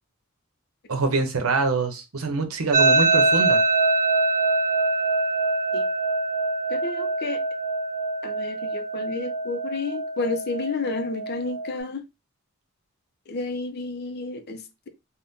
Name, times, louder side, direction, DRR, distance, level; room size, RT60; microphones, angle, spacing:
voice 1, 0.9-3.6, right 3 dB, 85° right, 0.7 m, -25 dB
sound 1, 2.7-11.8, right 3 dB, 35° right, 0.5 m, -24 dB
voice 2, 6.7-7.4 8.2-12.0 13.3-14.9, left 3 dB, 50° left, 0.5 m, -31 dB
2.6 x 2.1 x 3.5 m
head